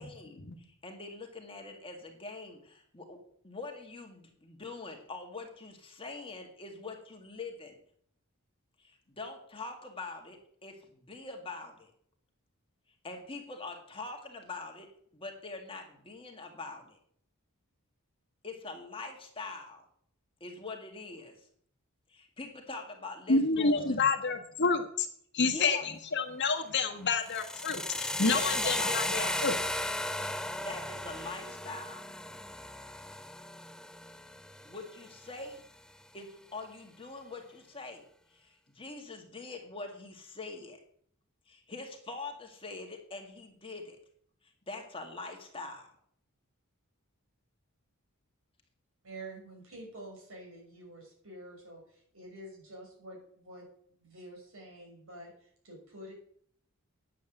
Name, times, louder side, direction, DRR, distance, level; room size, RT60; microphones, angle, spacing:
voice 1, 0.0-3.2 3.4-7.8 8.8-11.9 13.0-17.0 18.4-19.8 20.4-21.3 22.1-24.0 25.4-25.9 28.3-29.6 30.6-32.0 34.7-35.6 36.1-38.0 38.3-40.8 41.5-44.0 44.4-45.9, left 3 dB, 25° left, 3 dB, 1.9 m, -43 dB
voice 2, 23.3-25.1 25.3-29.5, left 4 dB, 50° left, 6 dB, 1.4 m, -29 dB
sound 1, 27.2-35.2, left 1 dB, 5° left, 0.4 m, -35 dB
voice 3, 49.0-53.7 54.0-56.1, right 1 dB, 70° right, -1 dB, 6.4 m, -48 dB
9.5 x 8.3 x 7.9 m, 0.64 s
head